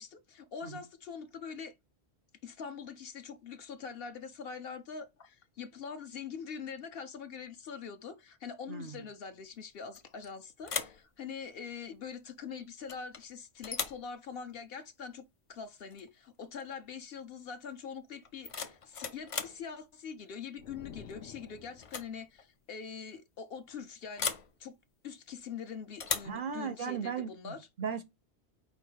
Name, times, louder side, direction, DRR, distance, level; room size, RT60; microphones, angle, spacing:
voice 1, 0.0-1.7 2.4-24.8 25.0-27.6, left 6 dB, 60° left, 0.9 m, -44 dB
voice 2, 8.7-9.1 26.2-28.0, right 6 dB, 60° right, 0.6 m, -37 dB
sound 1, 9.9-10.3 10.6-11.0 12.9-13.2 13.6-14.1 15.9-16.1 16.4-16.8 18.2-19.6 21.1-21.4 21.8-22.1 22.4-22.5 24.2-24.5 26.0-26.4, left 5 dB, 45° left, 0.4 m, -37 dB
sound 2, 20.6-22.2, left 8 dB, 90° left, 1.1 m, -50 dB
4.9 x 2.4 x 4.5 m
omnidirectional pair, 1.2 m